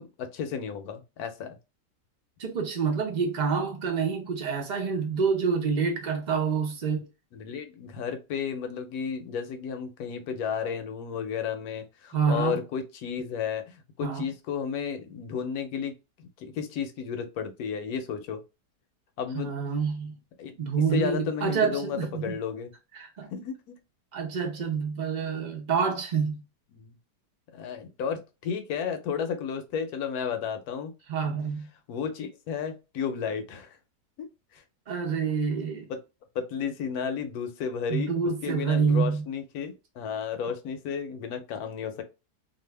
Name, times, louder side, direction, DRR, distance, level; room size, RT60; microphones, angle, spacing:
voice 1, 0.0-1.6 7.3-18.4 19.2-19.5 20.4-20.6 20.9-22.7 23.3-23.7 26.7-27.0 27.5-30.9 31.2-31.3 31.9-33.8 34.2-34.6 35.9-36.0 36.3-38.1 38.4-42.0, left 7 dB, 70° left, 1.0 m, -33 dB
voice 2, 2.4-7.1 12.1-12.6 14.0-14.3 19.3-20.2 20.6-22.4 22.9-23.3 24.1-26.4 31.1-31.7 34.9-35.9 37.9-39.2, right 6 dB, 60° right, 0.4 m, -27 dB
2.7 x 2.4 x 3.2 m
omnidirectional pair, 1.8 m